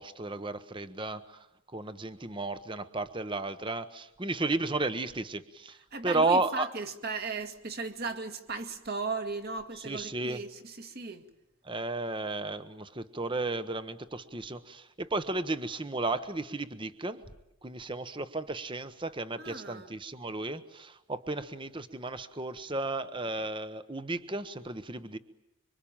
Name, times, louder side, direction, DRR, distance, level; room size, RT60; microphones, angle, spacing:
voice 1, 0.0-1.5 1.7-5.8 6.0-6.7 9.8-10.4 11.6-17.2 17.6-25.2, right 2 dB, 20° right, 1.0 m, -33 dB
voice 2, 5.9-11.3 19.4-19.9, right 4 dB, 45° right, 1.9 m, -37 dB
25.5 x 24.5 x 8.9 m
head